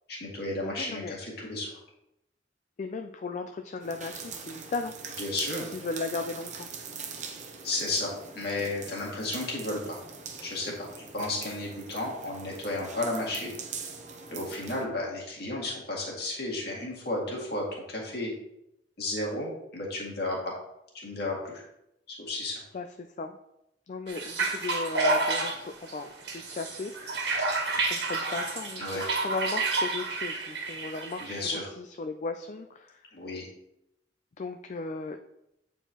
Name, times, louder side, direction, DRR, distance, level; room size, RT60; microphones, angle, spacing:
voice 1, 0.1-1.8 5.2-5.7 7.6-10.0 10.4-10.9 11.1-13.5 14.3-18.3 19.0-20.5 21.0-21.6 22.1-22.6 28.8-29.1 31.2-31.7 33.1-33.5, left 2 dB, 60° left, -3 dB, 2.1 m, -33 dB
voice 2, 0.6-1.1 2.8-4.9 5.7-6.7 22.7-22.9 23.2-23.4 23.9-25.6 25.9-26.9 27.8-33.0 34.4-35.2, left 3 dB, 40° left, 7 dB, 0.3 m, -36 dB
sound 1, 3.8-14.9, right 5 dB, 40° right, 0.8 m, -42 dB
sound 2, 24.1-31.5, right 3 dB, 65° right, 1.6 m, -30 dB
8.8 x 4.5 x 2.9 m, 0.84 s
head